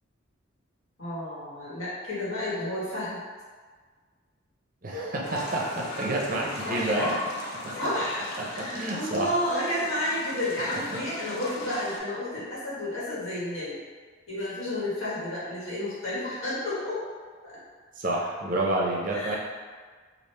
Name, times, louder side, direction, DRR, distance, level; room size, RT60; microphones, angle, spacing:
voice 1, 1.0-3.2 6.6-7.0 7.8-8.3 8.5-13.8 14.3-17.0 17.4-17.5 19.1-19.4, left 1 dB, 90° left, -9 dB, 1.4 m, -31 dB
voice 2, 4.8-7.2 7.6-7.7 8.4-9.3 10.9-11.0 18.0-19.4, right 1 dB, 40° right, -2 dB, 0.5 m, -29 dB
sound 1, 5.2-12.0, left 1 dB, 50° left, 0.5 m, -36 dB
3.3 x 2.4 x 3.2 m, 1.5 s
head